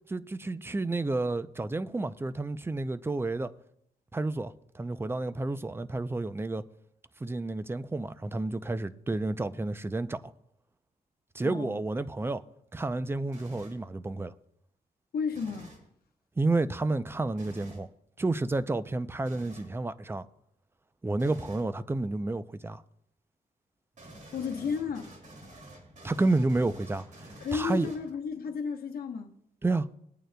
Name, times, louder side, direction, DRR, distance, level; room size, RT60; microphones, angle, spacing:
voice 1, 0.1-3.5 4.1-6.6 7.2-10.3 11.3-12.4 12.7-14.3 16.4-17.9 18.2-20.3 21.0-22.8 26.0-27.0 27.5-27.9 29.6-29.9, right 2 dB, 15° right, 0.5 m, -30 dB
voice 2, 11.4-11.8 15.1-15.7 24.3-25.1 27.4-29.3, left 6 dB, 65° left, 1.0 m, -33 dB
sound 1, 13.3-13.9 15.3-15.9 17.4-17.8 19.3-19.8 21.2-21.7 24.0-28.3, right 1 dB, 50° right, 2.6 m, -49 dB
21.0 x 9.0 x 2.2 m
wide cardioid pair, 115°, 16 cm